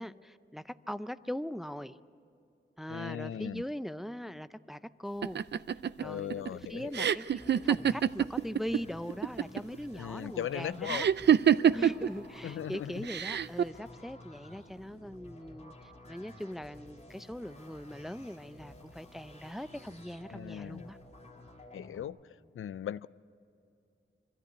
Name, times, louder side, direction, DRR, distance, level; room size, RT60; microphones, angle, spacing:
voice 1, 0.0-2.0 2.8-5.4 6.0-11.1 11.7-21.0, equal, ahead, 14 dB, 0.4 m, -41 dB
voice 2, 2.9-3.6 6.0-7.1 9.9-11.1 12.4-13.1 20.3-20.9 21.7-22.2 22.5-23.1, left 10 dB, 90° left, 18 dB, 0.4 m, -38 dB
sound 1, 5.2-8.8 9.1-9.8 10.9-12.1 13.1-13.6, right 9 dB, 60° right, 0.4 m, -26 dB
sound 2, 7.3-22.0, left 1 dB, 35° left, 2.7 m, -53 dB
25.0 x 13.5 x 8.4 m, 2.6 s
wide cardioid pair, 145°, 20 cm